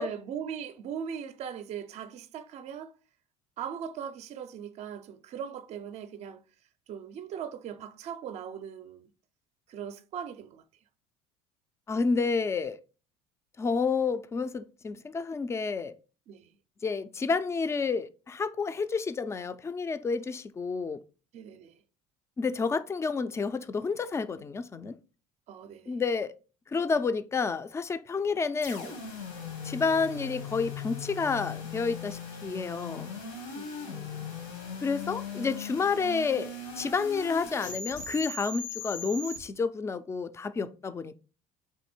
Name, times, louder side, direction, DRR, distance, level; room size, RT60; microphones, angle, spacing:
voice 1, 0.0-2.9 3.6-6.4 6.9-9.1 9.7-10.6 16.3-16.5 21.3-21.8 25.5-26.0 33.5-34.3, right 8 dB, 45° right, 0.4 m, -39 dB
voice 2, 11.9-12.8 13.6-15.9 16.8-21.0 22.4-24.9 25.9-26.3 26.7-28.9 29.6-33.1 34.8-41.2, left 4 dB, 20° left, 0.3 m, -30 dB
sound 1, 28.6-39.4, left 5 dB, 85° left, 1.6 m, -39 dB
3.5 x 2.6 x 4.2 m
supercardioid pair, 95°, 15 cm